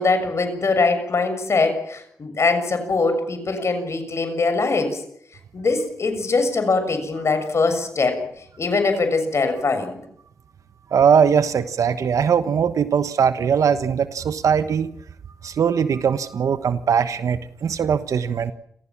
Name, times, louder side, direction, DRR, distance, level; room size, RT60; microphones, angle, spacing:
voice 1, 0.0-5.0 5.5-8.2 8.6-10.0, left 3 dB, 55° left, 8 dB, 6.8 m, -22 dB
voice 2, 10.9-14.9 15.4-18.5, right 7 dB, 75° right, 12 dB, 1.2 m, -20 dB
29.0 x 15.5 x 7.4 m, 0.69 s
cardioid pair, 50°, 6 cm